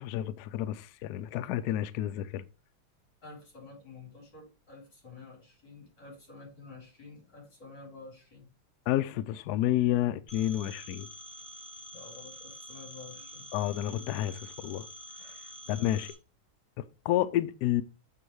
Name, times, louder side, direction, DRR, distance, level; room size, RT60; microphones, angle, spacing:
voice 1, 0.0-2.4 8.9-11.1 13.5-14.9 15.2-15.4 15.7-16.1 16.8-17.8, left 13 dB, 80° left, 0.8 m, -30 dB
voice 2, 3.2-8.5 11.9-13.5 15.7-16.2, left 3 dB, 55° left, 4.4 m, -50 dB
Telephone, 10.3-16.1, equal, 5° right, 1.5 m, -47 dB
7.7 x 3.9 x 4.6 m
omnidirectional pair, 2.2 m